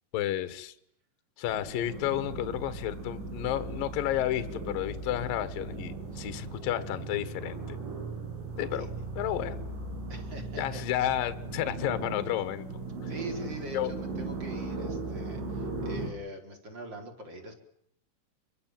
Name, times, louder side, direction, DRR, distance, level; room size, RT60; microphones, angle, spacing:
voice 1, 0.1-0.7 1.4-7.8 8.6-8.9 9.2-9.6 10.6-12.7 13.7-13.9, left 12 dB, 60° left, 11 dB, 2.6 m, -31 dB
sound 1, 1.5-16.1, right 3 dB, 70° right, 8.6 m, -38 dB
voice 2, 10.1-11.0 13.1-17.5, right 1 dB, 25° right, 4 dB, 4.6 m, -42 dB
28.0 x 24.0 x 7.7 m, 0.74 s
omnidirectional pair, 5.7 m